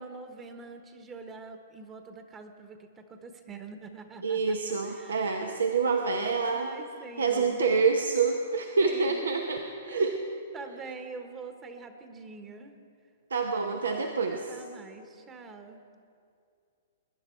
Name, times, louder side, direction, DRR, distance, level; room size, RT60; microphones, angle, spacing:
voice 1, 0.0-4.6 4.8-5.6 6.4-7.7 8.8-9.3 9.9-10.1 10.5-12.7 13.9-15.8, right 4 dB, 20° right, 7 dB, 1.1 m, -45 dB
voice 2, 4.2-6.7 7.2-9.6 9.8-10.2 13.3-14.4, right 4 dB, 85° right, 4 dB, 0.8 m, -27 dB
20.5 x 10.0 x 4.5 m, 2.4 s
hypercardioid pair, 130°, 0 cm